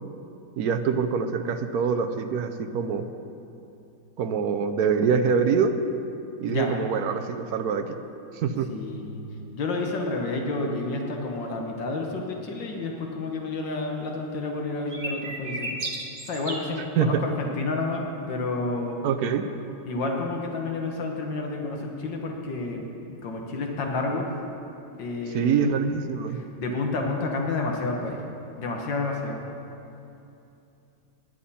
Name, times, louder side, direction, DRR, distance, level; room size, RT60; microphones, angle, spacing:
voice 1, 0.6-3.1 4.2-5.8 6.4-7.9 8.3-8.7 17.0-17.2 19.0-19.5 25.3-26.4, right 6 dB, 65° right, 8 dB, 1.1 m, -25 dB
voice 2, 6.5-6.8 8.7-9.2 9.5-15.7 16.3-19.1 19.9-24.3 25.0-26.0 26.3-28.2 28.6-29.4, left 3 dB, 75° left, 1 dB, 1.9 m, -30 dB
sound 1, 14.9-16.7, right 2 dB, 30° right, 1.2 m, -33 dB
18.5 x 10.0 x 4.2 m, 2.7 s
omnidirectional pair, 2.0 m